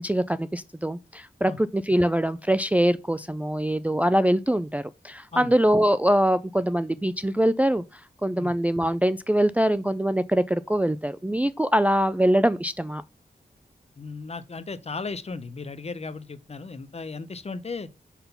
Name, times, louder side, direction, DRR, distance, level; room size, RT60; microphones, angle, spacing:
voice 1, 0.0-7.8 8.2-13.0, right 1 dB, 10° right, 0.3 m, -23 dB
voice 2, 14.0-17.9, left 4 dB, 40° left, 0.7 m, -36 dB
5.8 x 3.7 x 5.6 m
wide cardioid pair, 90°, 17 cm